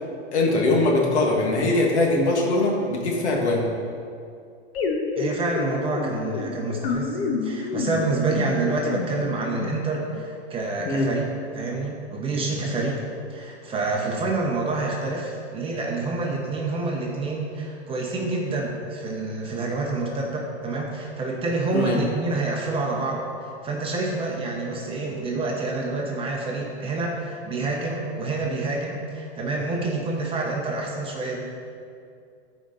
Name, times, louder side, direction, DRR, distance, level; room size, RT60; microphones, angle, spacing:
voice 1, 0.3-3.6 10.9-11.1 21.7-22.0, left 2 dB, 75° left, 0 dB, 2.0 m, -21 dB
sound 1, 4.7-10.2, left 4 dB, 60° left, 1.2 m, -29 dB
voice 2, 5.2-11.3 11.5-13.0 13.3-31.4, right 3 dB, 15° right, -2 dB, 1.2 m, -27 dB
13.5 x 5.1 x 4.1 m, 2.4 s
hypercardioid pair, 145°, 34 cm